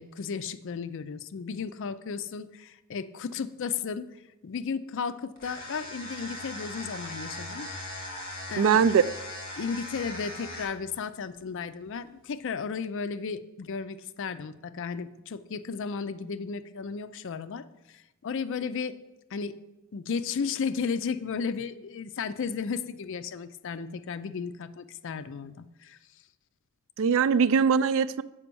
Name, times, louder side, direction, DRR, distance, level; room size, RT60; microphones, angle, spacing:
voice 1, 0.0-4.1 4.4-7.7 8.5-8.8 9.6-19.0 19.3-19.6 19.9-26.0, left 5 dB, 60° left, 0.4 m, -34 dB
sound 1, 5.4-10.9, left 1 dB, 40° left, 2.0 m, -39 dB
voice 2, 8.6-9.0 27.0-28.2, right 6 dB, 65° right, 0.3 m, -21 dB
7.1 x 5.2 x 6.9 m
head